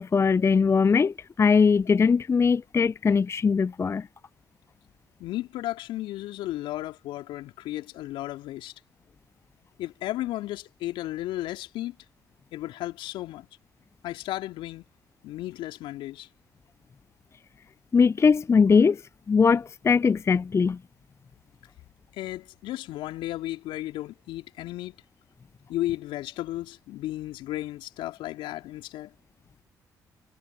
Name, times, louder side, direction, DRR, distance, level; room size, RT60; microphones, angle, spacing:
voice 1, 0.0-4.1 17.9-19.0 19.3-20.8, left 5 dB, 30° left, 0.5 m, -21 dB
voice 2, 5.2-8.7 9.8-12.0 12.5-13.5 14.0-14.9 15.2-16.3 22.1-25.0 25.7-29.1, left 15 dB, 70° left, 3.9 m, -34 dB
hypercardioid pair, 45°, 9 cm